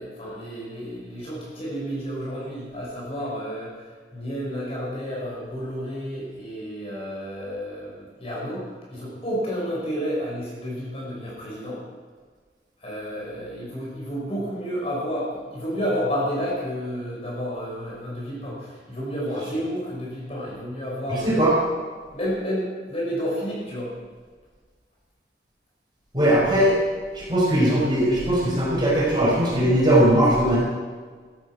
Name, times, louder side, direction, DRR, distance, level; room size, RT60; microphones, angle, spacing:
voice 1, 0.0-3.8 4.1-11.8 12.8-21.4 22.1-23.9, equal, 35° left, -5 dB, 5.5 m, -31 dB
voice 2, 21.1-21.5 26.1-26.8 27.1-30.6, right 1 dB, 25° right, -6 dB, 5.8 m, -19 dB
14.5 x 12.5 x 6.0 m, 1.5 s
head